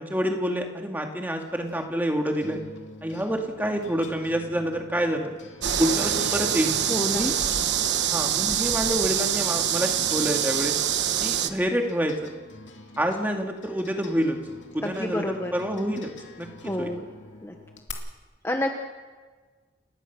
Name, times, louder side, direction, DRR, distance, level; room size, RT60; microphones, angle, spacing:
voice 1, 0.0-2.6 3.0-5.4 5.8-6.8 7.1-7.3 8.0-10.8 11.2-12.3 13.0-14.4 14.7-15.2 15.5-16.1 16.4-16.9, equal, 10° right, 2 dB, 2.1 m, -27 dB
sound 1, 1.5-17.9, left 3 dB, 85° left, 2.8 m, -47 dB
sound 2, 5.6-11.5, right 9 dB, 75° right, 1.1 m, -25 dB
voice 2, 6.9-7.3 14.8-15.5 16.6-17.1 17.4-17.5 18.4-18.7, left 1 dB, 15° left, 3 dB, 1.2 m, -28 dB
30.0 x 16.0 x 6.1 m, 1.4 s
head